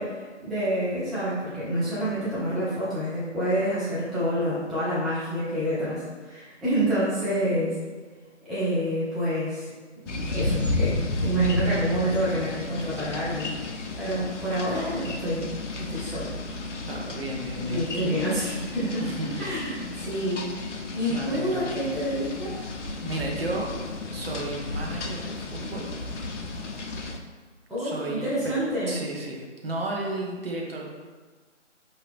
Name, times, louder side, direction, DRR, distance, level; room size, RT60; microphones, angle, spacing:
voice 1, 0.0-7.8 8.5-9.7 10.0-13.6 14.0-15.5 15.8-16.6 17.7-19.0 19.4-20.5 20.9-22.5 27.7-29.0, right 1 dB, ahead, -12 dB, 0.4 m, -28 dB
sound 1, 10.1-27.2, left 2 dB, 70° left, 0.6 m, -33 dB
voice 2, 16.9-17.8 19.0-19.4 21.1-21.7 23.0-23.7 24.1-25.8 27.8-28.6 28.9-30.9, right 2 dB, 50° right, -1 dB, 0.8 m, -33 dB
4.2 x 2.8 x 3.3 m, 1.4 s
figure-of-eight pair, 165°, 37 cm